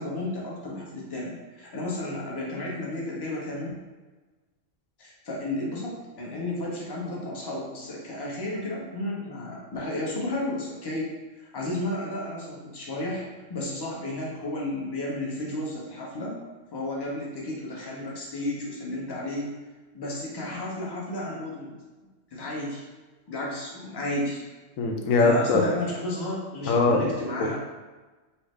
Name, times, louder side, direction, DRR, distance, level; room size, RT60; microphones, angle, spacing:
voice 1, 0.0-3.8 5.0-11.0 11.4-16.4 16.7-19.5 19.9-21.7 22.3-22.9 23.3-24.4 25.2-27.6, left 1 dB, 25° left, -4 dB, 0.5 m, -33 dB
voice 2, 24.8-25.6 26.7-27.0, left 3 dB, 90° left, 2 dB, 1.0 m, -21 dB
4.3 x 2.1 x 3.1 m, 1.2 s
omnidirectional pair, 1.3 m